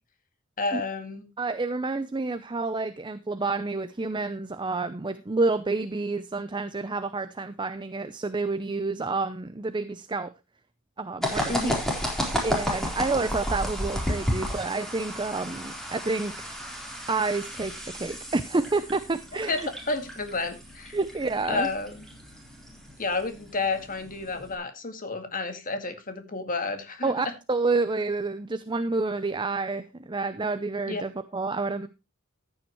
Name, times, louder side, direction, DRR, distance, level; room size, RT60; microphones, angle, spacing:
voice 1, 0.6-1.3 11.5-11.8 19.5-19.6 19.9-21.0 21.5-22.1 23.0-27.1 30.9-31.0, left 3 dB, 40° left, 7 dB, 2.0 m, -30 dB
voice 2, 1.4-10.3 11.0-11.7 12.4-16.6 17.1-19.7 20.9-21.7 27.0-31.9, right 3 dB, 20° right, 11 dB, 0.6 m, -29 dB
sound 1, 11.2-24.5, equal, ahead, 4.0 m, -33 dB
14.0 x 8.8 x 3.1 m, 0.26 s
head